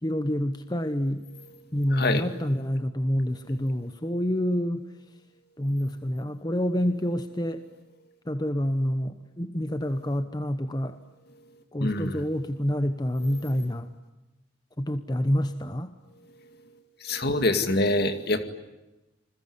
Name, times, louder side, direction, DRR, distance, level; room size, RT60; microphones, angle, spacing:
voice 1, 0.0-1.3 1.7-4.8 5.6-7.7 8.3-11.0 11.7-13.9 14.8-15.9, equal, 20° left, 9 dB, 1.0 m, -27 dB
voice 2, 1.9-2.3 11.8-12.2 17.1-18.4, left 2 dB, 55° left, 8 dB, 2.3 m, -25 dB
28.5 x 21.5 x 9.8 m, 1.0 s
head